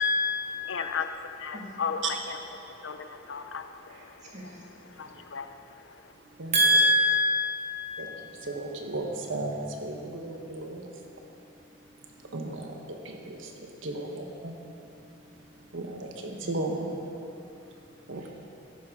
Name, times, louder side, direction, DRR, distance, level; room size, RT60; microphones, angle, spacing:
voice 1, 0.0-0.7 1.5-1.6 4.3-4.4 6.5-7.8 16.3-16.4, left 1 dB, 35° right, -4 dB, 2.0 m, -24 dB
voice 2, 0.7-6.1, left 6 dB, 70° left, 8 dB, 0.6 m, -37 dB
voice 3, 8.5-10.8 12.3-12.7 13.0-13.4 13.8-14.5 15.7-16.9 18.1-18.3, right 2 dB, 75° right, 2 dB, 1.1 m, -35 dB
13.0 x 10.5 x 3.7 m, 2.8 s
head